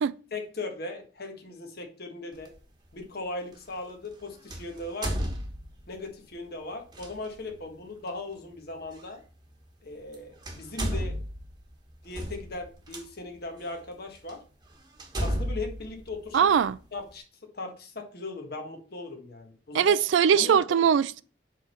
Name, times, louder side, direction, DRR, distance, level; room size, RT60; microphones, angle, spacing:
voice 1, 0.3-2.5 2.9-5.1 5.9-9.2 9.8-11.2 12.0-14.4 15.2-16.4 16.9-17.2 17.5-20.0 20.3-20.6, left 2 dB, 55° left, 1.5 m, -38 dB
sound 1, 2.4-2.6 4.5-6.0 6.9-7.1 9.0-9.1 10.0-10.1 10.4-13.0 13.7-13.8 14.3-14.4 15.0-16.8, equal, 25° right, 1.2 m, -33 dB
voice 2, 16.3-16.8 19.7-21.2, right 8 dB, 90° right, 0.3 m, -21 dB
7.4 x 3.6 x 5.5 m
head